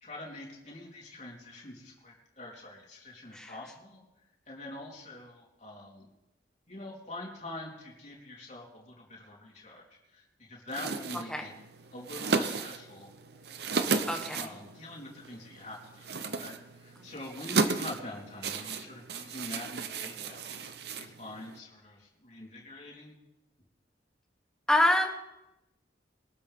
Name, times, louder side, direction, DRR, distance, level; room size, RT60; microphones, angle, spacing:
voice 1, 0.0-4.0 4.5-6.1 6.7-9.8 10.1-11.5 11.9-13.1 14.3-20.4 20.9-23.2, left 1 dB, 35° left, -3 dB, 3.7 m, -44 dB
sound 1, 10.7-21.6, right 4 dB, 55° right, 0.8 m, -34 dB
voice 2, 14.1-14.5 24.7-25.1, left 1 dB, 5° left, 3 dB, 1.3 m, -26 dB
23.0 x 12.5 x 3.7 m, 0.94 s
head